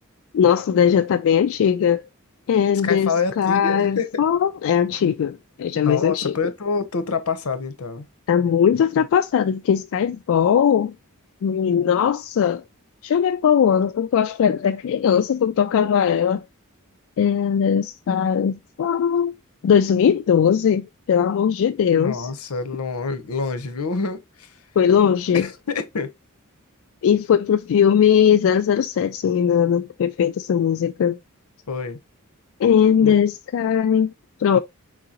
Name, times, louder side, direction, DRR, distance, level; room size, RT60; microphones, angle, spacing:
voice 1, 0.3-2.0 2.5-6.4 8.3-10.9 11.4-12.6 13.0-16.4 17.2-19.3 19.6-22.3 24.8-25.5 27.0-31.2 32.6-34.1 34.4-34.6, left 8 dB, 65° left, 0.3 m, -19 dB
voice 2, 2.8-4.2 5.7-8.1 21.9-24.5 25.3-26.1 31.7-32.0 33.0-33.1 34.5-34.6, left 4 dB, 85° left, 0.8 m, -27 dB
4.7 x 3.8 x 2.9 m
head